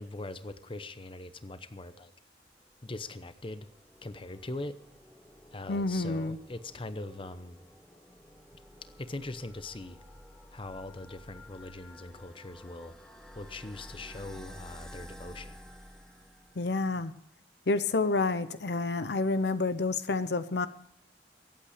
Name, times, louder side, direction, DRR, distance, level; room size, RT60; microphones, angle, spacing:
voice 1, 0.0-2.1 2.8-3.7 4.0-4.8 5.5-7.6 9.0-10.0 10.5-12.9 13.3-15.6, left 2 dB, 30° left, 11 dB, 0.8 m, -41 dB
sound 1, 2.7-16.9, left 1 dB, 5° left, 1.3 m, -52 dB
voice 2, 5.7-6.4 16.6-17.1 17.7-20.7, left 3 dB, 65° left, 12 dB, 0.7 m, -29 dB
23.0 x 8.6 x 5.0 m, 0.75 s
head